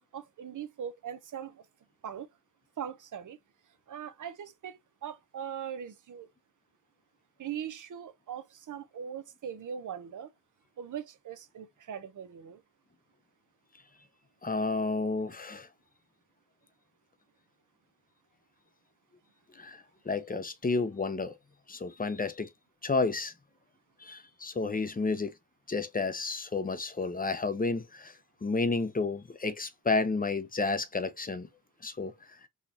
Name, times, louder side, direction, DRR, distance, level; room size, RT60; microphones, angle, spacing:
voice 1, 0.1-1.7 2.0-2.3 2.8-3.4 3.9-6.3 7.4-10.3 10.8-12.6, right 8 dB, 55° right, 0.8 m, -40 dB
voice 2, 14.4-15.7 19.6-21.3 21.7-22.5 22.8-23.3 24.0-25.3 25.7-28.1 28.4-31.5 31.8-32.1, left 3 dB, 25° left, 0.7 m, -31 dB
4.3 x 2.4 x 2.7 m
cardioid pair, 50°, 36 cm